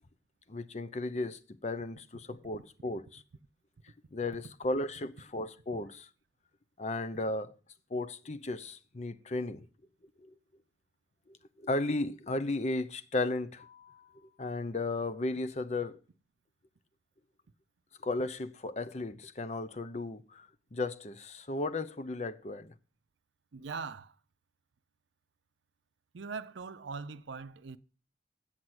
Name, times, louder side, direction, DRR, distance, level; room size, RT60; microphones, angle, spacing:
voice 1, 0.5-3.2 4.1-6.1 6.8-7.5 7.9-9.7 10.2-10.3 11.6-14.1 14.4-16.0 18.0-22.7, left 2 dB, 35° left, 0.6 m, -35 dB
voice 2, 23.5-24.2 26.1-27.8, right 4 dB, 80° right, 0.5 m, -41 dB
8.8 x 5.9 x 7.9 m
head